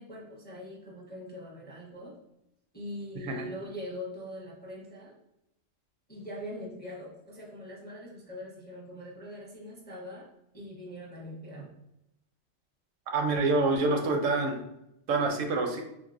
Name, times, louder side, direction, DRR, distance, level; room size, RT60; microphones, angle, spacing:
voice 1, 0.0-2.2 2.7-5.1 6.1-10.3 10.5-11.7, left 1 dB, 10° left, -4 dB, 0.5 m, -42 dB
voice 2, 13.1-14.6 15.1-15.8, right 3 dB, 80° right, 4 dB, 0.9 m, -26 dB
3.6 x 2.6 x 2.5 m, 0.82 s
omnidirectional pair, 1.3 m